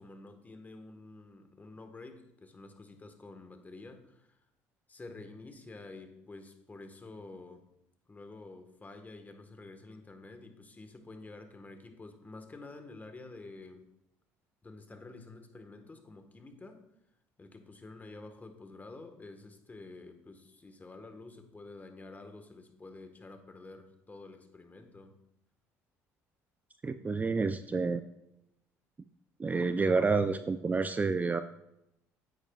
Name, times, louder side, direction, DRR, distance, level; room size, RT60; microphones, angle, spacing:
voice 1, 0.0-4.4 4.9-7.6 8.1-13.9 14.6-16.8 17.4-25.2, left 3 dB, 25° left, 6 dB, 1.4 m, -49 dB
voice 2, 26.8-28.0 29.4-31.4, right 4 dB, 25° right, 10 dB, 0.4 m, -29 dB
9.2 x 8.7 x 2.4 m, 0.81 s
supercardioid pair, 70°, 7 cm